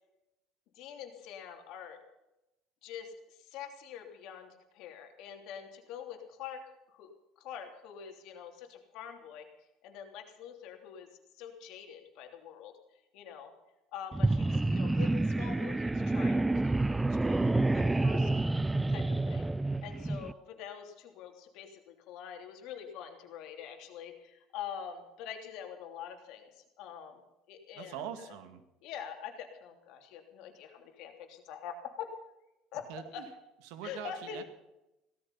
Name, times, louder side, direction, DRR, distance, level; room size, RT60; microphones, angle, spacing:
voice 1, 0.7-2.0 2.8-9.5 9.8-11.1 11.4-12.8 13.1-13.5 13.9-16.8 17.1-18.5 18.9-19.5 19.8-27.2 27.5-28.4 28.8-32.1 32.7-33.2 33.8-34.4, left 8 dB, 70° left, 4 dB, 3.1 m, -45 dB
sound 1, 14.1-20.3, right 2 dB, 10° right, 0.4 m, -28 dB
voice 2, 27.8-28.6 32.9-33.2 33.7-34.4, right 9 dB, 85° right, 8 dB, 2.1 m, -42 dB
17.0 x 13.5 x 5.7 m, 0.93 s
cardioid pair, 130°, 0 cm